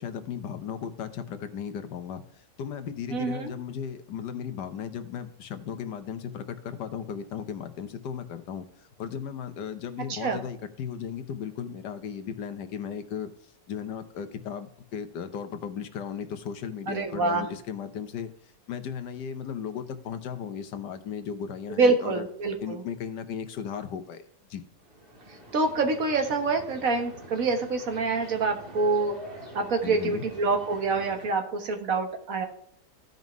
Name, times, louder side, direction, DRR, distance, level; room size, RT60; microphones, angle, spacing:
voice 1, 0.0-13.3 13.7-18.3 18.7-22.3 22.6-24.6 29.8-30.2, left 7 dB, 90° left, 9 dB, 1.6 m, -36 dB
voice 2, 3.1-3.5 10.1-10.4 16.9-17.5 21.8-22.8 25.3-29.2 29.5-32.5, right 3 dB, 55° right, 5 dB, 1.6 m, -26 dB
sound 1, 24.8-31.3, right 1 dB, 35° right, 1.9 m, -45 dB
15.0 x 5.3 x 3.1 m, 0.68 s
omnidirectional pair, 1.8 m